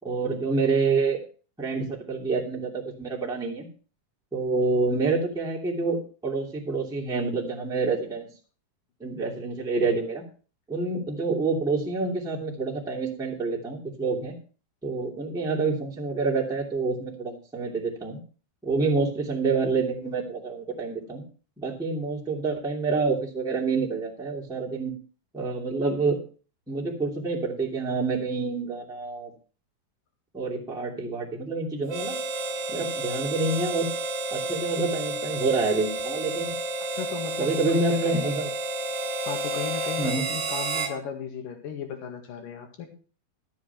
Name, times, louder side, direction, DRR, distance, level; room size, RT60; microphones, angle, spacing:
voice 1, 0.0-1.2 1.6-3.7 4.3-8.3 9.0-10.2 10.7-14.3 14.8-18.2 18.6-21.2 21.6-24.9 25.3-26.2 26.7-29.3 30.3-32.2 32.7-33.9 34.3-36.5 37.4-38.5 40.0-40.3, right 3 dB, ahead, -4 dB, 2.2 m, -27 dB
Harmonica, 31.9-41.0, right 2 dB, 60° right, 2.7 m, -31 dB
voice 2, 36.9-38.5 39.2-42.9, left 7 dB, 70° left, 5 dB, 3.6 m, -36 dB
13.0 x 7.4 x 5.8 m, 0.38 s
omnidirectional pair, 4.0 m